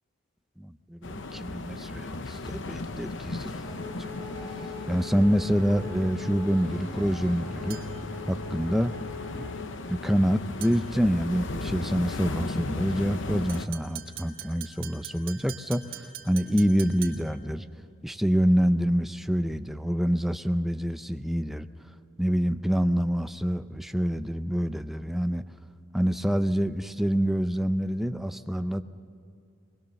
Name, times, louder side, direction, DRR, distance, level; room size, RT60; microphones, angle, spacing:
voice 1, 0.6-3.5 3.8-4.1 4.9-7.8 8.3-8.9 9.3-9.5 9.9-17.7 18.0-21.7 22.2-25.4 25.9-28.8, equal, ahead, 9 dB, 0.5 m, -26 dB
sound 1, 1.0-13.7, left 2 dB, 60° left, 0.8 m, -36 dB
sound 2, 3.6-9.6, left 3 dB, 25° left, 6.5 m, -40 dB
sound 3, 7.7-8.1 10.6-11.0 13.5-17.4, right 10 dB, 75° right, 2.4 m, -43 dB
22.5 x 20.5 x 7.0 m, 2.4 s
head